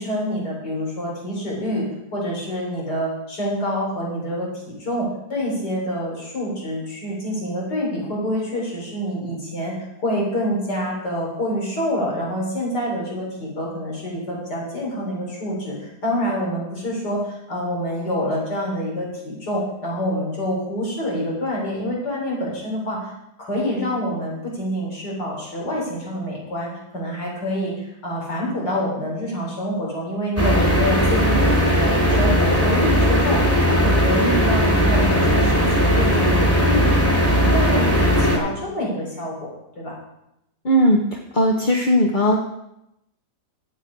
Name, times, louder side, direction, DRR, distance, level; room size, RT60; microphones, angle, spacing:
voice 1, 0.0-23.1 23.4-33.4 33.7-39.5 39.8-39.9, equal, 75° left, -3 dB, 4.2 m, -27 dB
sound 1, 30.4-38.4, equal, 10° left, 2.4 m, -18 dB
voice 2, 40.6-42.4, equal, 35° left, 1 dB, 0.9 m, -18 dB
11.5 x 8.1 x 5.2 m, 0.84 s
omnidirectional pair, 1.8 m